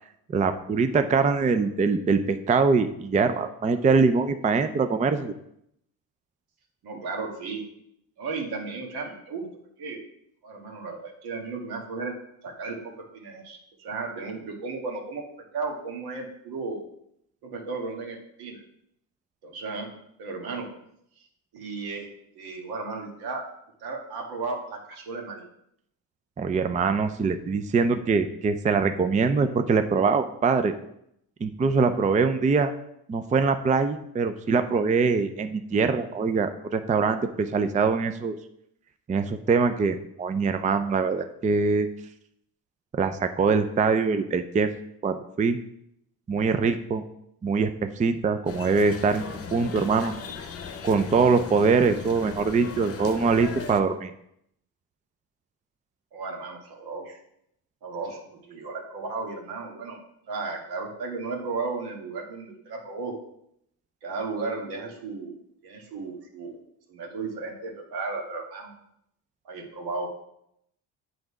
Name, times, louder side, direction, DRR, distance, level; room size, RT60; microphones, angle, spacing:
voice 1, 0.3-5.3 26.4-30.7 31.4-32.7 33.1-38.4 39.1-41.9 42.9-44.7 45.0-45.6 46.3-47.0 47.4-49.2 49.5-50.1 50.8-54.1, right 4 dB, 20° right, 9 dB, 0.4 m, -23 dB
voice 2, 6.8-7.6 8.2-9.4 9.8-10.0 10.4-12.1 12.4-15.2 15.5-16.8 17.4-18.6 19.4-19.9 20.2-20.7 21.5-22.1 22.4-23.4 23.8-25.4 56.1-57.2 57.8-60.0 60.3-63.2 64.0-65.4 65.6-66.6 66.9-68.7 69.5-70.1, right 4 dB, 75° right, 1 dB, 1.7 m, -34 dB
sound 1, 48.5-53.8, left 5 dB, 35° left, 0.8 m, -38 dB
7.8 x 3.9 x 4.7 m, 0.75 s
supercardioid pair, 80°, 39 cm